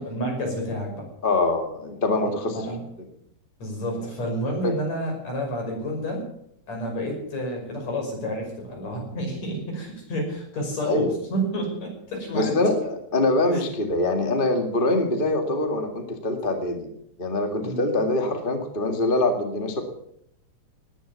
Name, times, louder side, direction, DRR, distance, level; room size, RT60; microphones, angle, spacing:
voice 1, 0.0-1.1 2.2-2.8 3.6-6.3 6.7-12.6 13.5-13.6 17.6-17.8, equal, 65° left, 1 dB, 6.9 m, -30 dB
voice 2, 1.2-2.5 4.6-4.7 10.8-11.0 12.3-16.9 17.2-19.8, left 2 dB, 20° left, 5 dB, 1.6 m, -24 dB
19.0 x 10.5 x 7.1 m, 0.72 s
omnidirectional pair, 3.4 m